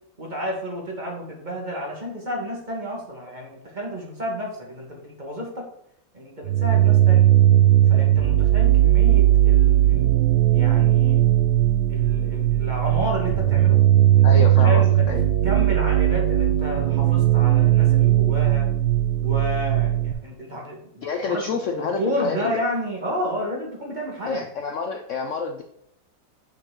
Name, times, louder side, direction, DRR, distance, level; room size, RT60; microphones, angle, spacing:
voice 1, 0.2-5.7 6.1-7.3 7.9-10.1 10.5-11.2 11.9-13.8 14.3-15.1 15.4-18.7 19.2-21.4 21.8-24.5, equal, 25° right, -1 dB, 1.7 m, -31 dB
sound 1, 6.4-20.1, right 13 dB, 85° right, 1.5 m, -18 dB
voice 2, 14.2-15.2 21.0-22.6 24.2-25.6, left 5 dB, 80° left, 5 dB, 0.6 m, -28 dB
6.7 x 6.0 x 3.8 m, 0.75 s
omnidirectional pair, 2.1 m